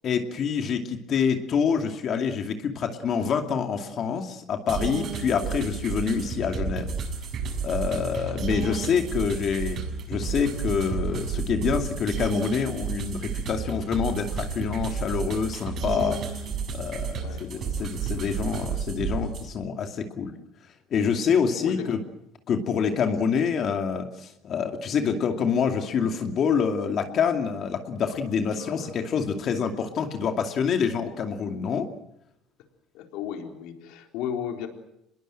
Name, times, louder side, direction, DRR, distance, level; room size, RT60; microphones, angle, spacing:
voice 1, 0.0-6.9 7.6-9.8 10.1-16.2 16.7-20.3 20.9-22.0 22.5-31.9, left 6 dB, 45° left, 5 dB, 2.6 m, -26 dB
sound 1, 4.7-19.5, right 5 dB, 45° right, 7.2 m, -31 dB
voice 2, 8.2-8.9 17.2-17.7 21.6-21.9 28.1-28.2 28.6-28.9 32.9-34.7, left 9 dB, 80° left, 4 dB, 4.0 m, -36 dB
26.0 x 21.5 x 7.8 m, 0.79 s
cardioid pair, 125°, 0 cm